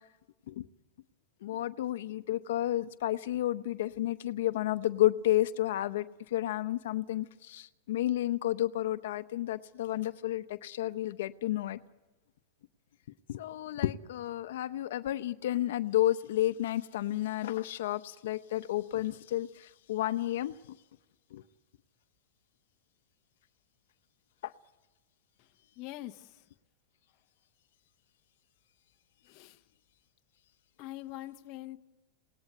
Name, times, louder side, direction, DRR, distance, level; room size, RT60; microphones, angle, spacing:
voice 1, 1.4-6.1 6.3-11.8 13.3-20.8 21.3-21.4 24.4-24.5, left 14 dB, 75° left, 0.8 m, -31 dB
voice 2, 25.8-26.4 29.2-29.6 30.8-31.8, left 16 dB, 40° left, 0.9 m, -43 dB
27.5 x 18.5 x 8.1 m
supercardioid pair, 160°, 0 cm